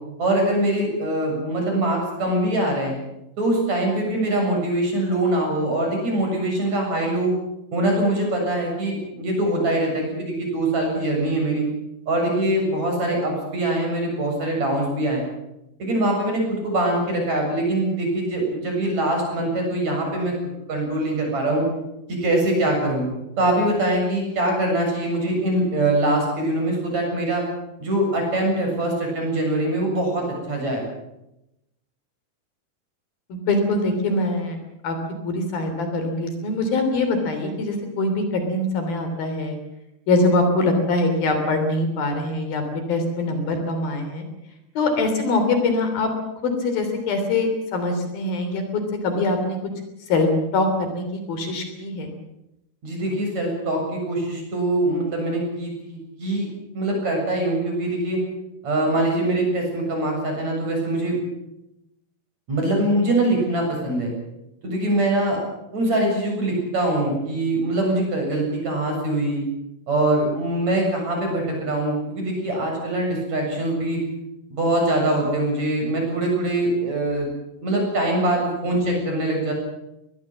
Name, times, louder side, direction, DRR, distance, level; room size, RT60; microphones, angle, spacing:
voice 1, 0.2-3.0 3.4-7.3 7.7-11.7 12.1-15.2 15.8-20.3 20.7-21.6 22.1-23.0 23.4-27.4 27.8-30.8 52.8-56.5 56.7-58.2 58.6-61.2 62.5-64.1 64.6-65.4 65.7-69.4 69.9-74.0 74.5-77.3 77.6-79.5, right 1 dB, 45° right, 1 dB, 8.5 m, -23 dB
voice 2, 33.3-34.6 34.8-35.0 35.2-39.6 40.1-44.2 44.8-46.1 46.4-49.6 50.1-52.1, left 2 dB, 65° left, 6 dB, 5.0 m, -23 dB
23.0 x 20.0 x 7.5 m, 0.88 s
omnidirectional pair, 4.6 m